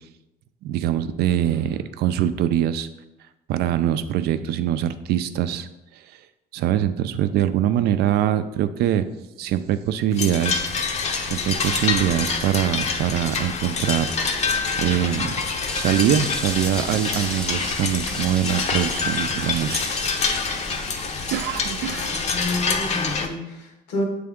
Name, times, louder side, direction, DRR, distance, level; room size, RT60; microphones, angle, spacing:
voice 1, 0.6-2.9 3.5-5.7 5.9-6.2 6.5-9.1 9.4-10.6 11.2-14.1 14.8-15.3 15.7-20.0 21.3-22.1, right 11 dB, 75° right, 12 dB, 0.4 m, -23 dB
sound 1, 10.1-23.3, left 4 dB, 40° left, 0.7 m, -26 dB
sound 2, 15.7-22.5, equal, 5° left, 0.5 m, -37 dB
voice 2, 21.8-24.0, left 1 dB, 85° left, 2 dB, 1.4 m, -30 dB
7.6 x 3.4 x 3.6 m, 0.96 s
cardioid pair, 110°, 17 cm